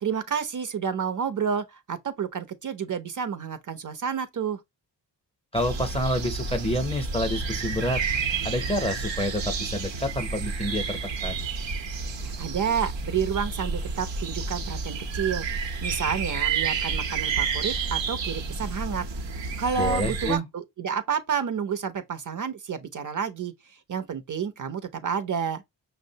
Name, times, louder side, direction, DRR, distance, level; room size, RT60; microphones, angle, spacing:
voice 1, 0.0-4.6 12.2-15.5 15.8-19.1 19.6-23.5 23.9-25.6, right 7 dB, 45° right, 0.6 m, -30 dB
voice 2, 5.5-8.0 8.4-11.4 19.8-20.5, equal, 15° left, 0.5 m, -28 dB
sound 1, 5.5-20.4, right 5 dB, 90° right, 0.8 m, -30 dB
5.8 x 2.0 x 2.7 m
wide cardioid pair, 160°, 43 cm